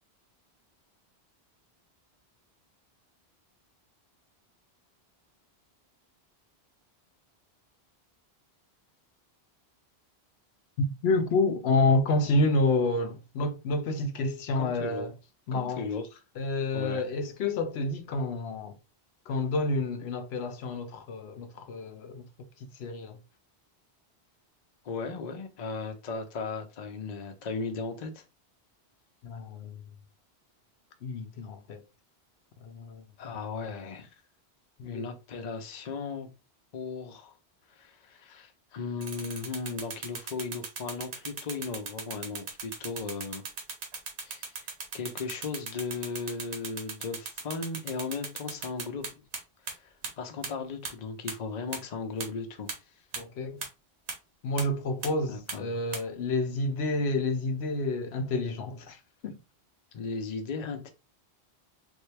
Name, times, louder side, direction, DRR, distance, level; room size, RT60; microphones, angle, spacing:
voice 1, 11.0-15.1 15.5-15.9 16.4-18.7 19.3-22.2 22.8-23.2 29.2-29.8 31.0-31.8 32.6-33.0 34.8-35.0 53.2-53.6 54.4-59.0 59.2-59.4, left 2 dB, 75° left, 0.8 m, -29 dB
voice 2, 14.6-15.1 15.5-16.2 16.7-17.0 24.8-28.2 33.2-34.1 34.8-36.3 36.7-37.3 37.7-43.4 44.2-44.5 44.9-49.1 49.8-49.9 50.2-52.7 55.3-55.8 59.9-60.9, left 4 dB, 45° left, 0.6 m, -36 dB
sound 1, 39.0-49.4 49.7-49.8 50.0-50.1 50.4-50.5 50.8-50.9 51.3-51.4 51.7-51.8 52.2-52.3 52.7-52.8 53.1-53.2 53.6-53.7 54.1-54.2 54.6-54.7 55.0-55.1 55.5-55.6 55.9-56.0, right 4 dB, 85° right, 1.1 m, -36 dB
3.5 x 2.2 x 3.1 m
omnidirectional pair, 1.1 m